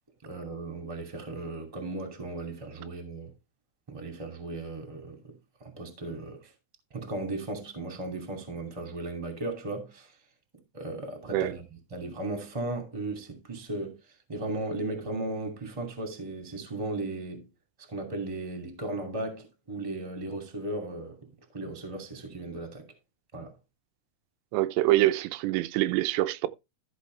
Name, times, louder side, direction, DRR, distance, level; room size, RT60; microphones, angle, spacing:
voice 1, 0.2-3.3 3.9-6.5 6.9-10.1 10.7-14.0 14.3-17.5 17.9-21.2 21.5-22.9 23.3-23.5, right 2 dB, 10° right, 1.5 m, -36 dB
voice 2, 24.5-26.5, right 16 dB, 90° right, 2.9 m, -25 dB
13.5 x 6.3 x 3.3 m
omnidirectional pair, 4.8 m